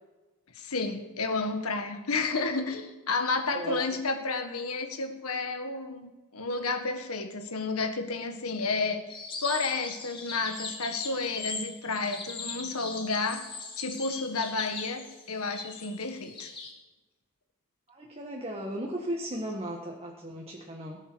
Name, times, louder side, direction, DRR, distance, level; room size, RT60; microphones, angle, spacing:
voice 1, 0.5-9.0 9.4-13.4 13.8-16.5, left 3 dB, 85° left, 6 dB, 1.7 m, -31 dB
voice 2, 3.4-3.9 17.9-21.0, equal, 30° right, 0 dB, 1.6 m, -36 dB
sound 1, 9.1-16.7, left 4 dB, 25° left, 2.4 m, -40 dB
18.0 x 9.1 x 6.3 m, 1.2 s
head